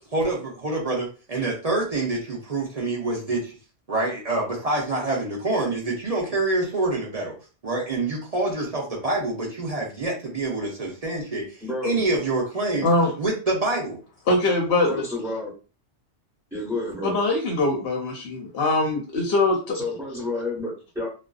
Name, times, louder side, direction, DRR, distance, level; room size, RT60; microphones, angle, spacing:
voice 1, 0.1-3.5 3.9-7.4 7.6-12.9 13.2-14.0, right 2 dB, 45° right, -3 dB, 0.5 m, -26 dB
voice 2, 11.6-12.0 14.9-15.5 16.5-17.1 19.7-21.1, left 2 dB, 5° right, -7 dB, 1.1 m, -30 dB
voice 3, 14.3-15.0 17.0-19.8, left 2 dB, 60° left, -1 dB, 0.8 m, -22 dB
2.5 x 2.2 x 2.3 m, 0.36 s
omnidirectional pair, 1.3 m